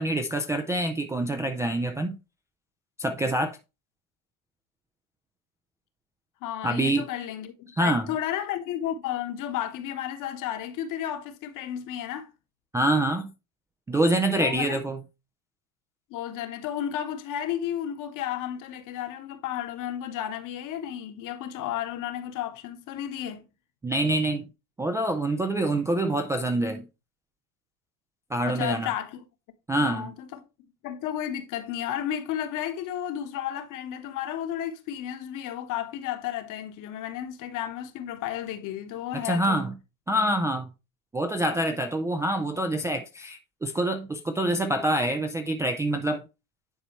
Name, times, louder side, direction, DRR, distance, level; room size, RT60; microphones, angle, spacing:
voice 1, 0.0-2.2 3.0-3.6 6.6-7.0 7.8-8.1 12.7-13.3 13.9-15.0 23.8-24.5 24.8-26.9 28.3-28.9 29.7-30.1 39.1-39.7 40.1-40.7 41.1-46.2, right 1 dB, 10° right, 0.3 m, -26 dB
voice 2, 6.4-12.3 14.4-14.8 16.1-23.5 28.5-29.2 29.8-30.4 30.8-39.6, left 10 dB, 50° left, 1.2 m, -33 dB
10.0 x 4.1 x 3.0 m
supercardioid pair, 115°, 40 cm